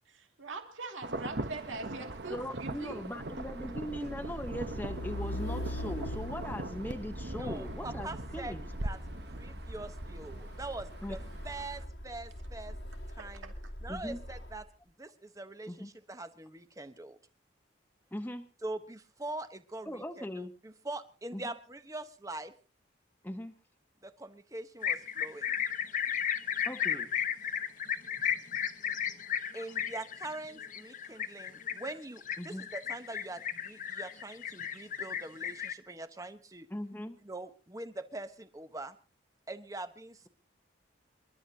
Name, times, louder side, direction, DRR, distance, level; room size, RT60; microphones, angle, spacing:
voice 1, 0.1-3.0 13.2-13.5, right 3 dB, 80° right, 2.5 m, -43 dB
Insect / Thunder / Rain, 1.0-11.9, right 2 dB, 55° right, 1.1 m, -41 dB
voice 2, 2.3-8.6 11.0-11.2 13.9-14.2 15.7-15.9 18.1-18.5 19.9-20.5 21.3-21.5 23.2-23.5 26.6-27.1 32.4-32.7 36.7-37.2, equal, 10° left, 1.0 m, -40 dB
Truck, 3.3-14.6, left 1 dB, 70° left, 1.9 m, -42 dB
voice 3, 7.3-8.6 8.8-9.0 9.3-12.8 13.1-13.5 13.8-14.6 15.0-17.2 18.6-22.5 24.0-25.6 29.5-36.7 37.2-39.0 39.5-40.3, right 2 dB, 15° right, 1.0 m, -43 dB
sound 1, 24.8-35.7, left 9 dB, 40° left, 0.8 m, -34 dB
28.0 x 12.0 x 2.9 m
head